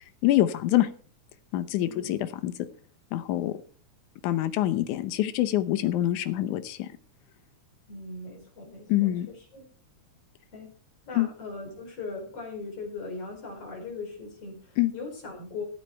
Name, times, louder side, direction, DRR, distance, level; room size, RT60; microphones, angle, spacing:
voice 1, 0.2-0.9 1.5-2.5 3.1-3.5 4.2-6.9 8.9-9.3 11.2-11.3 14.8-14.9, left 14 dB, 85° left, 11 dB, 2.4 m, -25 dB
voice 2, 7.9-9.7 10.5-10.7 11.1-15.6, left 3 dB, 50° left, 1 dB, 5.7 m, -39 dB
14.5 x 8.3 x 4.5 m, 0.43 s
omnidirectional pair, 3.4 m